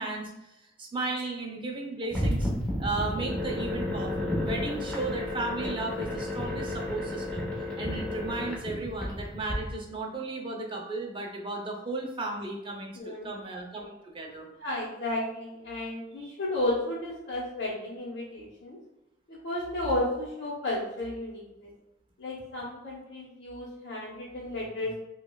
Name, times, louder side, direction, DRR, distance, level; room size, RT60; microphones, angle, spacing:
voice 1, 0.0-2.5 2.8-7.5 7.8-14.5 16.2-16.3, right 2 dB, 30° right, 0 dB, 0.6 m, -35 dB
sound 1, 2.1-9.6, left 1 dB, 5° left, 0.8 m, -32 dB
voice 2, 12.9-13.3 14.6-18.8 19.3-21.7 22.2-25.0, left 1 dB, 65° left, -7 dB, 0.9 m, -33 dB
5.2 x 2.3 x 2.2 m, 0.93 s
head